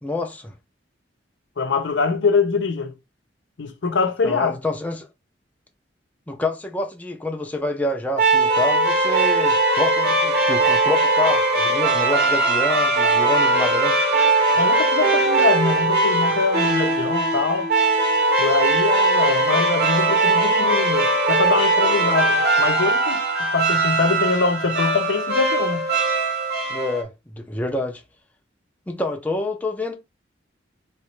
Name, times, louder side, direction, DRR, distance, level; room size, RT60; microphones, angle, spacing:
voice 1, 0.0-0.5 4.2-5.1 6.3-13.9 26.7-28.0 28.9-30.0, left 2 dB, 10° left, 0.5 m, -27 dB
voice 2, 1.6-2.9 3.6-4.6 14.6-17.7 18.4-25.9, left 4 dB, 70° left, 0.6 m, -23 dB
sound 1, 8.2-27.0, right 2 dB, 60° right, 1.1 m, -20 dB
3.2 x 3.0 x 3.1 m
head